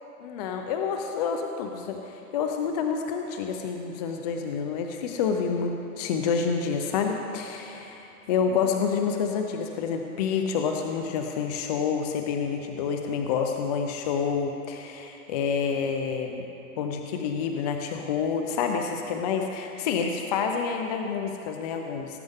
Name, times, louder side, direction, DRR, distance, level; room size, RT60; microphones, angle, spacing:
voice 1, 0.2-7.8 8.3-16.5 16.8-22.2, left 6 dB, 30° left, 4 dB, 0.5 m, -28 dB
19.0 x 9.2 x 3.6 m, 3.0 s
hypercardioid pair, 145°, 44 cm